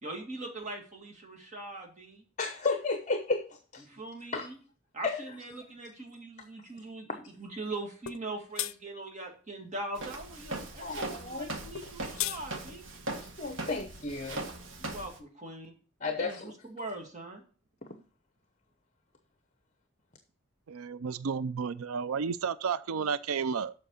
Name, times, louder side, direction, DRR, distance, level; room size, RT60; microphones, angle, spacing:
voice 1, 0.0-2.2 3.9-4.6 4.9-12.8 14.8-15.7 16.2-17.4, right 2 dB, 35° right, 2.3 m, -41 dB
voice 2, 2.4-3.8 4.3-4.5 5.0-5.2 10.8-11.5 13.4-14.4 16.0-16.5, left 3 dB, 35° left, 0.9 m, -33 dB
sound 1, 8.1-8.2 8.6-8.7 11.7-12.4, left 13 dB, 75° left, 0.5 m, -33 dB
Walk footsteps, 10.0-15.2, right 2 dB, 65° right, 1.4 m, -40 dB
voice 3, 20.7-23.7, right 6 dB, 85° right, 0.4 m, -32 dB
7.8 x 6.0 x 6.4 m
head